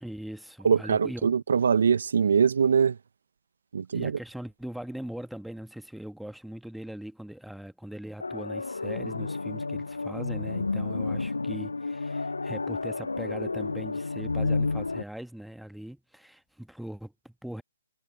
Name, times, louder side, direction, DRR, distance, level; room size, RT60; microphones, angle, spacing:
voice 1, 0.0-1.4 3.9-17.6, right 1 dB, ahead, 1.3 m, -40 dB
voice 2, 0.6-3.0 3.7-4.2, right 6 dB, 60° right, 0.9 m, -23 dB
sound 1, 8.2-15.0, left 3 dB, 80° left, 0.4 m, -31 dB
figure-of-eight pair, 135°, 0 cm